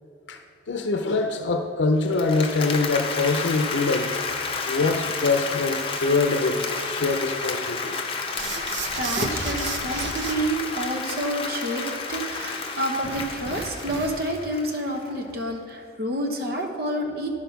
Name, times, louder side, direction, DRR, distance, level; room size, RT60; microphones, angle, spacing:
voice 1, 0.7-4.2 4.7-8.0, left 3 dB, 85° left, 6 dB, 0.6 m, -24 dB
Applause, 2.0-15.0, left 4 dB, 30° left, 0.7 m, -31 dB
sound 1, 8.3-10.3 13.0-14.4, right 5 dB, 85° right, 0.8 m, -34 dB
voice 2, 9.0-17.3, right 1 dB, 55° right, 2 dB, 1.1 m, -28 dB
12.0 x 4.3 x 5.8 m, 2.5 s
head